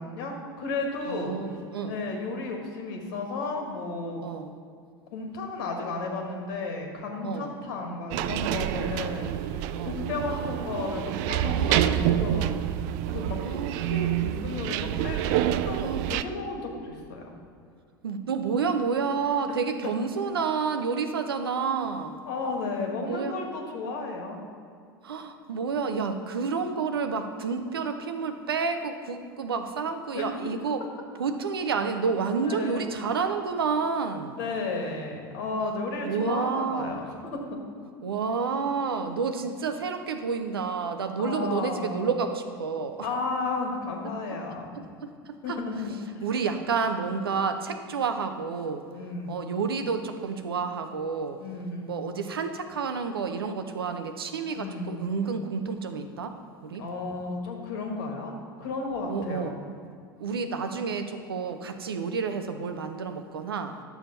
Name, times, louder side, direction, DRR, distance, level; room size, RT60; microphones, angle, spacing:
voice 1, 0.0-1.4 1.9-4.2 5.1-12.6 13.1-13.6 13.9-17.3 19.5-19.6 22.3-24.4 30.1-30.4 32.4-33.0 34.4-37.6 37.8-38.0 41.2-42.1 43.0-44.8 45.4-46.2 48.9-49.4 51.4-51.9 54.6-55.0 56.8-59.5, left 3 dB, 60° left, 2 dB, 1.7 m, -33 dB
voice 2, 1.1-2.0 4.2-4.5 7.2-7.6 8.7-8.9 9.8-10.0 11.6-11.9 13.4-13.8 15.8-16.1 18.0-22.2 23.1-23.3 25.0-30.8 31.2-34.4 36.0-37.0 38.0-43.1 44.8-45.6 46.2-48.8 49.3-51.4 51.9-56.4 56.6-56.8 59.1-59.5 60.2-63.7, right 5 dB, 80° right, 8 dB, 0.7 m, -30 dB
sound 1, 8.1-16.2, right 12 dB, 50° right, 0.4 m, -27 dB
11.0 x 7.0 x 4.1 m, 2.3 s
figure-of-eight pair, 80°, 12 cm